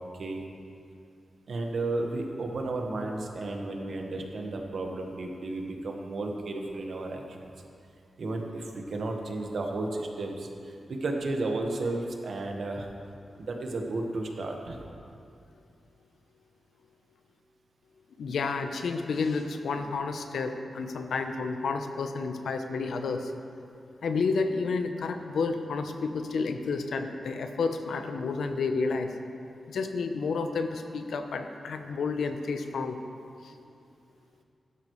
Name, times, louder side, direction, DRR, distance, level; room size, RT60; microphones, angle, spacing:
voice 1, 1.5-7.5 8.2-12.9 13.4-14.8, right 2 dB, 65° right, 2 dB, 1.4 m, -33 dB
voice 2, 18.2-23.3 24.0-29.1 29.7-33.0 33.4-33.5, left 4 dB, 85° left, 6 dB, 0.8 m, -30 dB
16.0 x 12.5 x 3.2 m, 2.5 s
wide cardioid pair, 120°, 0 cm